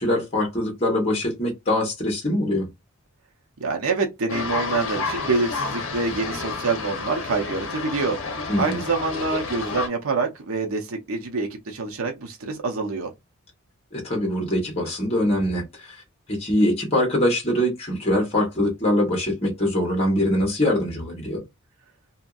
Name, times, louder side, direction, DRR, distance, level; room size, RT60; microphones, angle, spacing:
voice 1, 0.0-2.7 8.5-8.8 13.9-16.0 16.3-21.4, left 1 dB, 30° left, 1.0 m, -23 dB
voice 2, 3.6-8.2 8.6-13.1, right 4 dB, 75° right, 0.6 m, -26 dB
sound 1, 4.3-9.9, left 4 dB, 60° left, 0.8 m, -30 dB
2.8 x 2.6 x 2.3 m
head